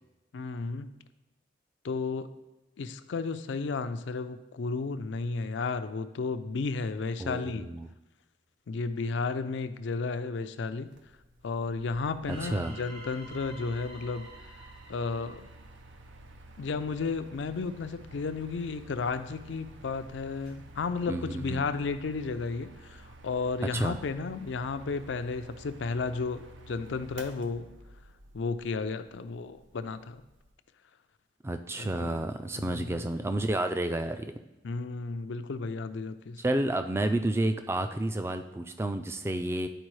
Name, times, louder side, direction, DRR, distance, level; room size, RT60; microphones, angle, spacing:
voice 1, 0.3-0.9 1.8-2.3 2.8-7.7 8.7-10.9 11.4-14.3 14.9-15.5 16.6-27.7 28.3-30.2 31.8-32.3 32.5-33.0 34.6-36.4, left 4 dB, 80° left, 11 dB, 0.4 m, -33 dB
voice 2, 7.2-7.9 12.3-12.8 21.1-21.7 23.7-24.0 31.4-34.3 36.4-39.7, right 1 dB, 15° right, 8 dB, 0.3 m, -30 dB
Mechanical fan, 10.9-30.5, right 2 dB, 90° right, 0.6 m, -51 dB
sound 1, 12.2-16.3, right 2 dB, 30° right, 0.7 m, -49 dB
sound 2, 17.4-21.2, right 1 dB, 75° right, 2.5 m, -63 dB
9.9 x 4.5 x 3.2 m, 1.0 s
head